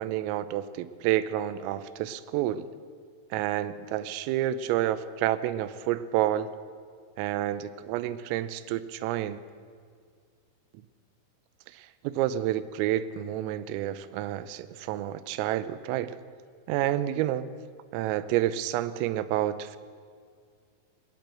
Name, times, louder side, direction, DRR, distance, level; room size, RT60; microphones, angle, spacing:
voice 1, 0.0-2.7 3.3-6.5 7.2-9.4 11.7-16.2 16.7-17.5 17.9-19.8, right 13 dB, 85° right, 14 dB, 3.4 m, -29 dB
20.0 x 19.5 x 7.8 m, 2.1 s
omnidirectional pair, 5.8 m